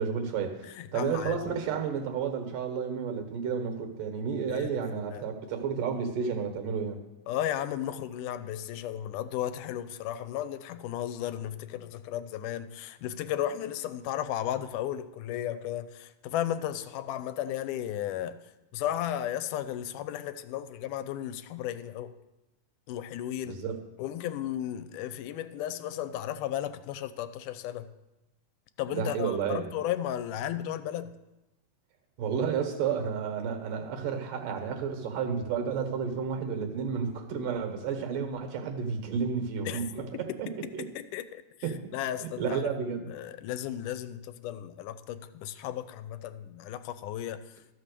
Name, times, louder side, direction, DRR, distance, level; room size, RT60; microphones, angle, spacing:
voice 1, 0.0-0.7 0.9-7.0 23.5-23.8 28.9-29.6 32.2-40.5 40.7-40.9 41.6-41.9 42.2-43.1, right 6 dB, 85° right, 2.9 m, -31 dB
voice 2, 0.8-1.4 4.5-5.2 7.3-18.4 18.7-22.1 22.9-23.6 24.0-27.9 28.8-31.2 39.7-39.8 40.1-40.4 40.8-41.4 41.9-47.4, left 11 dB, 85° left, 2.1 m, -34 dB
13.0 x 5.6 x 6.7 m
omnidirectional pair, 3.6 m